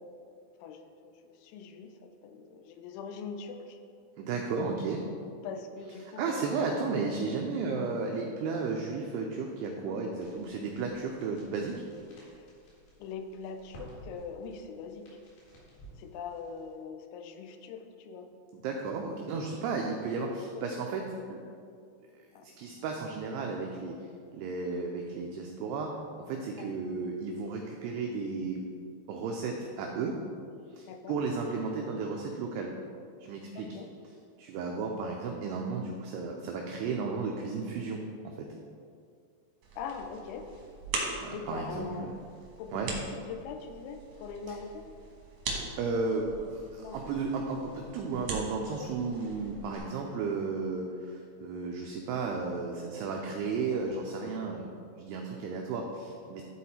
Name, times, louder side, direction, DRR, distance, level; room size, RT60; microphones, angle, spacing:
voice 1, 0.0-3.8 5.2-6.5 9.9-10.0 12.4-12.5 13.0-15.2 16.0-18.3 19.3-19.7 20.2-20.3 20.5-20.6 22.3-22.4 26.6-26.7 30.9-31.2 33.6-33.9 39.8-40.5 41.3-42.1 42.6-44.9 46.8-47.0 48.8-48.9, left 5 dB, 90° left, 6 dB, 3.0 m, -42 dB
voice 2, 4.2-5.0 6.2-11.8 18.5-21.0 21.3-21.4 22.1-24.0 24.3-25.9 26.2-28.6 29.1-30.2 30.8-32.7 33.2-33.8 34.4-38.0 38.4-38.5 41.2-42.1 42.7-42.9 44.5-44.6 45.8-56.4, right 4 dB, 90° right, 1 dB, 2.3 m, -34 dB
sound 1, 10.2-16.7, right 1 dB, 55° left, 3.3 m, -54 dB
sound 2, 39.6-49.8, right 3 dB, 70° right, 1.9 m, -41 dB
12.0 x 4.1 x 4.2 m, 2.4 s
omnidirectional pair, 5.4 m